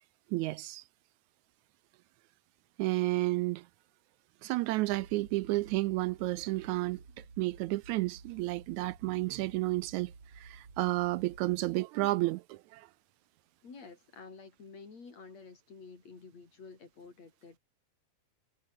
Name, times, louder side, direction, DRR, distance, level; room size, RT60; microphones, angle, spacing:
voice 1, 0.3-0.8 2.8-3.7 4.4-7.0 7.4-12.9, right 19 dB, 80° right, 1.8 m, -31 dB
sound 1, 4.9-11.8, right 4 dB, 50° right, 5.6 m, -53 dB
voice 2, 13.6-17.6, left 4 dB, 60° left, 5.9 m, -50 dB
omnidirectional pair, 3.5 m